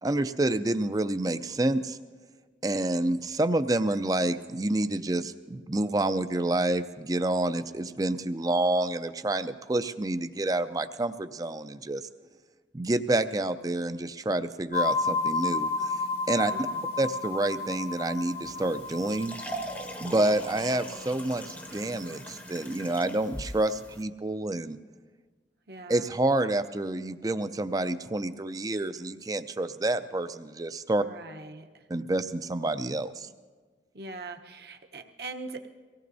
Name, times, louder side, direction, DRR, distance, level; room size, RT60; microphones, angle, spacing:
voice 1, 0.0-2.0 2.6-12.1 12.7-16.0 16.3-16.5 17.0-19.3 20.0-24.8 25.9-31.0 31.9-33.3, right 2 dB, 20° right, 11 dB, 0.4 m, -28 dB
sound 1, 14.7-22.9, left 3 dB, 60° left, 1.1 m, -33 dB
voice 2, 16.5-16.8 25.7-26.1 31.0-31.8 33.9-35.7, right 3 dB, 60° right, 5 dB, 0.9 m, -41 dB
sound 2, 18.4-24.0, right 1 dB, 10° left, 0.7 m, -41 dB
24.0 x 17.5 x 2.7 m, 1.4 s
head